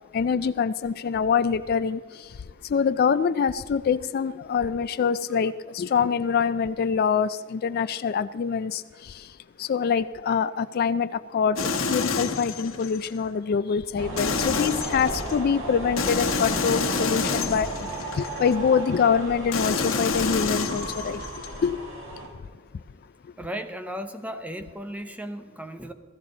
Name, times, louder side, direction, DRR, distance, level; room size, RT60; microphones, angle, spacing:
voice 1, 0.1-2.0 2.7-9.1 9.6-17.7 18.1-21.2 21.6-21.8, left 6 dB, 50° left, 0.3 m, -25 dB
sound 1, 11.6-13.1 14.2-15.4 16.0-18.5 19.5-21.5, left 4 dB, 85° left, 1.2 m, -28 dB
sound 2, 14.0-22.3, right 1 dB, 85° right, 3.9 m, -35 dB
voice 2, 23.4-25.9, equal, 5° right, 0.7 m, -35 dB
15.5 x 15.0 x 3.9 m
head